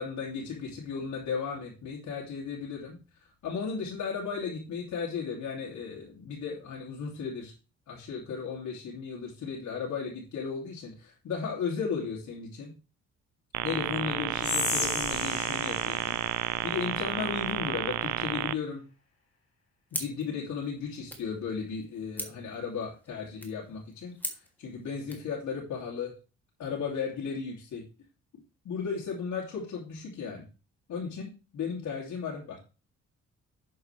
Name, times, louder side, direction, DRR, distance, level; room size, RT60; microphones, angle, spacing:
voice 1, 0.0-3.0 3.4-7.5 7.9-12.7 13.6-16.2 16.6-18.8 19.9-26.1 26.6-27.8 28.6-30.4 30.9-32.6, left 5 dB, 70° left, -2 dB, 3.0 m, -35 dB
sound 1, 13.5-18.5, right 14 dB, 75° right, 0.6 m, -31 dB
Whispering, 14.4-17.6, left 4 dB, 50° left, 3.1 m, -35 dB
sound 2, 19.9-25.3, equal, 5° left, 2.8 m, -43 dB
10.5 x 8.0 x 3.4 m, 0.32 s
cardioid pair, 90°, 30 cm